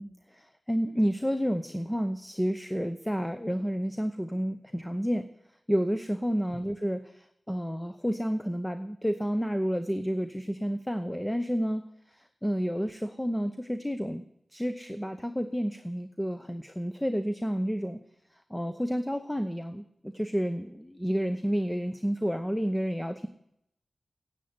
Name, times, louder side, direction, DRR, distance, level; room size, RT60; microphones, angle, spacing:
voice 1, 0.0-5.3 5.7-14.2 14.5-18.0 18.3-23.3, equal, 5° left, 9 dB, 0.7 m, -30 dB
10.0 x 8.0 x 9.5 m, 0.77 s
wide cardioid pair, 80°, 0 cm